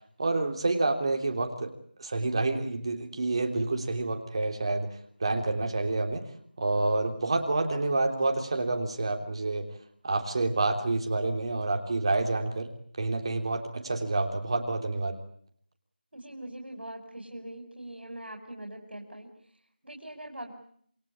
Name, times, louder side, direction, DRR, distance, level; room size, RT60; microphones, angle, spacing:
voice 1, 0.2-1.7 2.0-4.9 5.2-6.2 6.6-9.7 10.0-12.7 13.0-15.2, right 2 dB, 30° right, 4 dB, 3.5 m, -28 dB
voice 2, 16.1-20.5, right 1 dB, 85° right, 3 dB, 5.7 m, -42 dB
28.0 x 21.0 x 8.8 m, 0.63 s
figure-of-eight pair, 170°, 6 cm